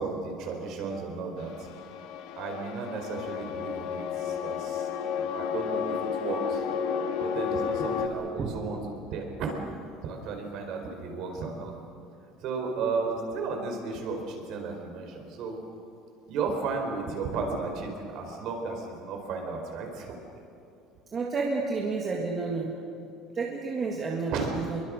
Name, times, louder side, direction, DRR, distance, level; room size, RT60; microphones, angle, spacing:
voice 1, 0.0-1.7 2.4-4.9 5.2-6.6 7.2-9.5 10.0-11.8 12.4-15.6 16.3-20.2 24.3-24.5, right 4 dB, 45° right, 3 dB, 4.4 m, -34 dB
sound 1, 1.4-8.1, left 7 dB, 60° left, 1.9 m, -32 dB
voice 2, 21.1-22.8 23.3-24.8, right 4 dB, 25° right, -1 dB, 1.9 m, -30 dB
28.0 x 23.0 x 6.4 m, 2.6 s
cardioid pair, 180°, 0 cm